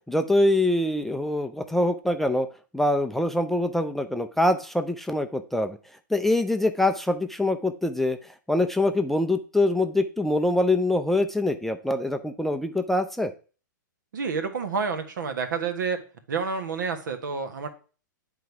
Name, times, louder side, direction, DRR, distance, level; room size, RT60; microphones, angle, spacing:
voice 1, 0.1-2.5 2.7-5.8 6.1-8.2 8.5-13.3, left 1 dB, ahead, 8 dB, 0.4 m, -24 dB
voice 2, 14.1-16.0 16.3-17.7, right 5 dB, 70° right, 8 dB, 1.4 m, -29 dB
9.1 x 3.8 x 4.7 m, 0.37 s
hypercardioid pair, 125°, 11 cm